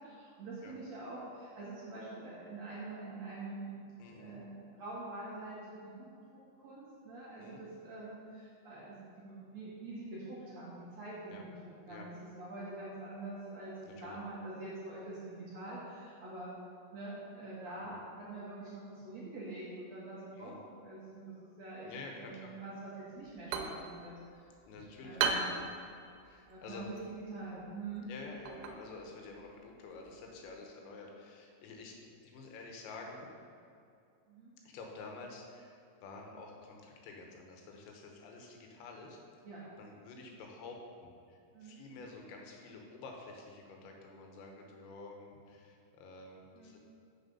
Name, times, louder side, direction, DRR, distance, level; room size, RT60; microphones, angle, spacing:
voice 1, 0.0-6.1 6.6-11.5 11.9-13.7 14.0-16.5 16.9-20.5 20.8-24.4 25.0-25.4 26.5-28.1 34.3-34.5 39.4-39.6 41.5-41.8 46.5-46.8, right 2 dB, 60° right, -8 dB, 1.7 m, -45 dB
voice 2, 4.0-4.4 7.4-7.6 11.3-11.4 11.9-12.1 13.9-14.2 17.7-18.0 20.4-20.6 21.8-22.5 24.7-25.2 25.4-25.7 26.3-26.9 28.1-32.0 32.2-33.2 34.6-39.2 39.8-46.8, left 3 dB, 75° left, 1 dB, 3.2 m, -49 dB
sound 1, 23.2-30.6, right 5 dB, 80° right, 3.2 m, -40 dB
7.8 x 6.7 x 5.4 m, 2.5 s
omnidirectional pair, 5.4 m